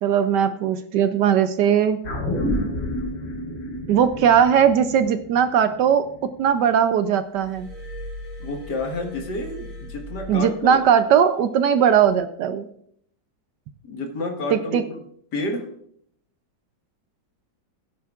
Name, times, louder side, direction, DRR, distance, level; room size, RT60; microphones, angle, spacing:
voice 1, 0.0-2.0 3.9-6.1 6.4-7.7 10.3-12.7 14.5-14.8, right 8 dB, 70° right, 11 dB, 1.1 m, -19 dB
sound 1, 2.0-6.6 7.0-7.1, left 1 dB, 75° left, 4.7 m, -30 dB
Glass, 7.3-10.9 11.9-12.1, left 1 dB, 45° right, 4.0 m, -39 dB
voice 2, 8.4-10.8 13.8-15.0 15.3-15.7, left 2 dB, 60° left, 3 dB, 2.1 m, -29 dB
16.5 x 9.4 x 2.4 m, 0.67 s
omnidirectional pair, 2.1 m